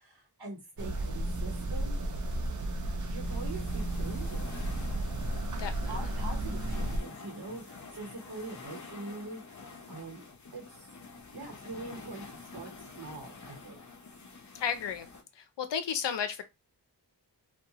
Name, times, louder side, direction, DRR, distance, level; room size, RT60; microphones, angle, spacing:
voice 1, 0.0-2.0 3.1-4.6 5.9-9.6 9.9-10.2 10.5-10.9 11.3-13.8, right 2 dB, 65° right, 1.0 m, -43 dB
sound 1, 0.8-7.0, right 1 dB, 45° right, 0.6 m, -33 dB
sound 2, 3.2-15.2, left 4 dB, 45° left, 0.7 m, -48 dB
voice 2, 5.6-6.1 14.5-15.1 15.3-16.4, left 7 dB, 85° left, 0.5 m, -33 dB
2.8 x 2.2 x 2.8 m
wide cardioid pair, 85°, 41 cm